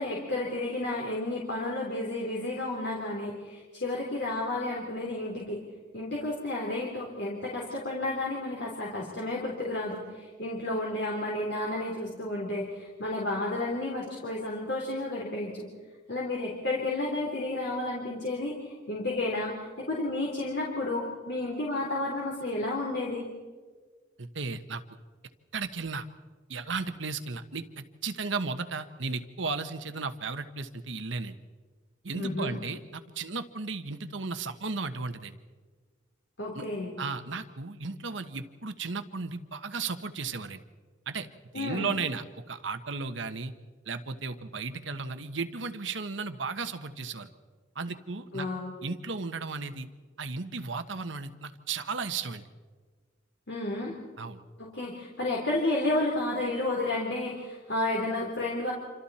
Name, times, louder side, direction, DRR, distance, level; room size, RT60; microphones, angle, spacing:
voice 1, 0.0-5.6 5.9-15.7 16.1-23.3 32.1-32.6 36.4-36.9 41.5-41.9 48.3-48.7 53.5-54.0 54.6-58.7, left 2 dB, 60° left, -3 dB, 3.7 m, -31 dB
voice 2, 24.2-24.8 25.5-26.1 26.5-31.3 32.0-35.4 36.5-36.6 37.0-40.6 41.1-41.3 41.5-43.5 43.9-47.3 47.7-48.5 48.8-49.9 50.2-52.4 54.2-54.4, right 4 dB, 75° right, 9 dB, 1.3 m, -35 dB
27.5 x 26.5 x 4.3 m, 1.5 s
head